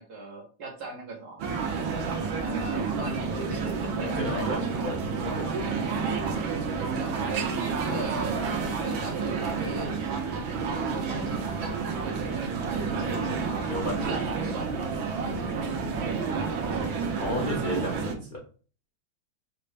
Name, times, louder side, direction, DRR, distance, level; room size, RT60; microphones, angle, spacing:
voice 1, 0.0-1.4 2.4-4.4 6.9-7.2 7.8-9.9 10.7-13.6 14.1-14.8 15.2-17.2, right 2 dB, 55° right, -1 dB, 1.6 m, -39 dB
sound 1, 1.4-18.1, right 5 dB, 80° right, 1.6 m, -30 dB
voice 2, 4.2-5.6 7.9-8.0 13.7-14.2 15.2-15.6 17.2-18.4, left 1 dB, 65° left, -2 dB, 0.5 m, -34 dB
5.4 x 2.5 x 3.2 m, 0.38 s
omnidirectional pair, 2.2 m